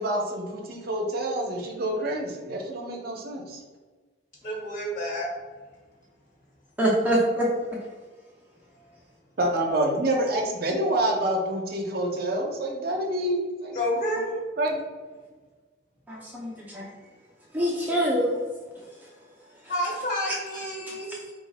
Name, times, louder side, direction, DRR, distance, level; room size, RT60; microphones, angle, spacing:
voice 1, 0.0-3.6 9.4-13.8 14.6-14.8, right 1 dB, 55° right, 1 dB, 0.7 m, -27 dB
voice 2, 4.4-5.3 13.7-14.4 19.7-21.1, equal, 45° left, -2 dB, 1.4 m, -29 dB
voice 3, 6.8-7.5 16.1-16.9 17.5-18.3, right 1 dB, 10° right, -5 dB, 0.6 m, -24 dB
4.2 x 2.4 x 4.1 m, 1.3 s
head